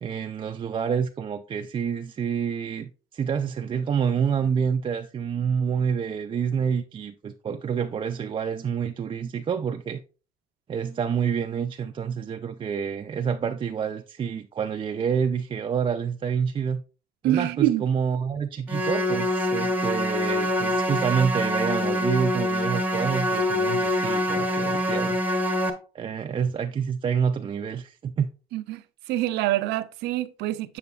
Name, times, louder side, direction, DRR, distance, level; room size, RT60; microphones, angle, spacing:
voice 1, 0.0-10.0 10.7-16.8 17.2-25.2 25.9-28.3, right 7 dB, 30° right, 0.4 m, -28 dB
voice 2, 17.2-17.9 28.5-28.8 29.1-30.8, right 14 dB, 85° right, 0.5 m, -25 dB
sound 1, 18.7-25.7, left 1 dB, 10° right, 0.9 m, -25 dB
6.9 x 6.7 x 2.3 m
cardioid pair, 110°, 17 cm